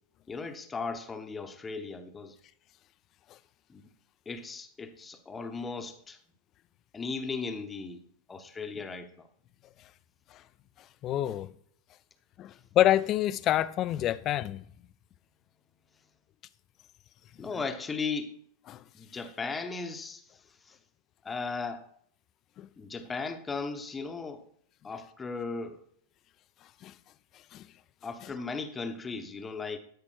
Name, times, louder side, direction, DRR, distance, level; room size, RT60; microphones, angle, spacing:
voice 1, 0.3-2.4 3.7-3.8 4.3-6.2 6.9-8.0 8.3-9.3 17.4-18.4 18.9-20.2 20.6-20.8 21.2-21.8 22.8-24.4 24.8-25.8 28.0-29.8, left 4 dB, 15° left, 1.0 m, -36 dB
voice 2, 11.0-11.5 12.4-14.6 18.7-18.8 22.6-22.7 26.8-26.9 27.5-27.6, left 13 dB, 35° left, 0.5 m, -27 dB
12.5 x 5.3 x 4.6 m
figure-of-eight pair, 90°, 0 cm